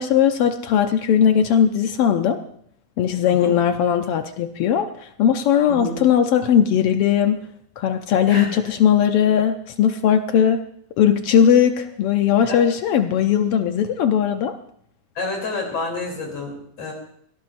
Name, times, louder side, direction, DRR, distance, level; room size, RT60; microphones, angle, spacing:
voice 1, 0.0-2.4 3.0-4.9 5.2-7.4 7.8-10.6 11.0-14.5, left 9 dB, 75° left, 7 dB, 1.4 m, -18 dB
voice 2, 8.3-8.7 12.5-12.6 15.2-16.9, left 2 dB, 55° left, 0 dB, 4.2 m, -29 dB
22.0 x 18.0 x 2.6 m, 0.65 s
omnidirectional pair, 3.5 m